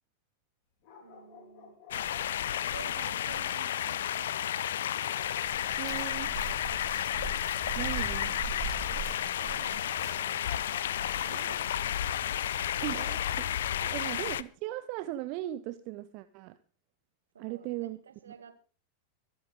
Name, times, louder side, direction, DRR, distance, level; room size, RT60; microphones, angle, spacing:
sound 1, 0.8-2.8 5.0-6.3 9.9-11.6 11.8-11.9, left 6 dB, 40° left, 3.4 m, -54 dB
voice 1, 1.0-1.8 2.7-4.7 7.7-8.4 9.4-10.6 11.2-12.3 13.8-13.9 17.3-18.5, right 6 dB, 70° right, 8 dB, 2.0 m, -51 dB
sound 2, 1.9-14.4, left 10 dB, 60° left, 0.6 m, -32 dB
Chirp tweet, 5.5-11.6, right 3 dB, 15° right, 5.9 m, -41 dB
voice 2, 5.8-6.3 7.7-8.5 12.8-16.6 17.4-18.0 18.3-18.4, right 16 dB, 45° right, 12 dB, 0.7 m, -38 dB
25.0 x 8.8 x 3.8 m, 0.37 s
figure-of-eight pair, 90°, 0 cm